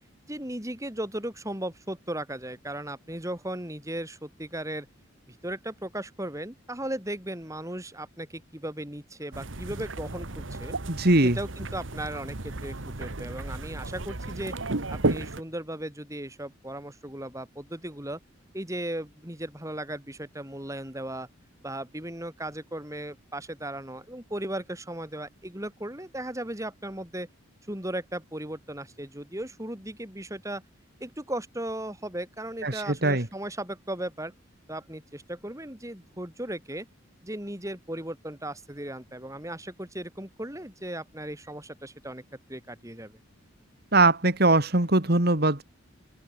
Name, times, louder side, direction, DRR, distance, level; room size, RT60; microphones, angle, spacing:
voice 1, 0.3-4.9 5.3-10.7 11.2-14.5 14.9-18.2 18.5-21.3 21.6-27.3 27.7-30.6 31.0-34.3 34.7-36.9 37.2-42.2 42.5-43.2, right 1 dB, 15° right, 4.4 m, -36 dB
sound 1, 9.3-15.4, right 2 dB, 75° right, 1.7 m, -33 dB
voice 2, 10.9-11.4 32.6-33.3 43.9-45.6, right 2 dB, 50° right, 2.3 m, -21 dB
open air
head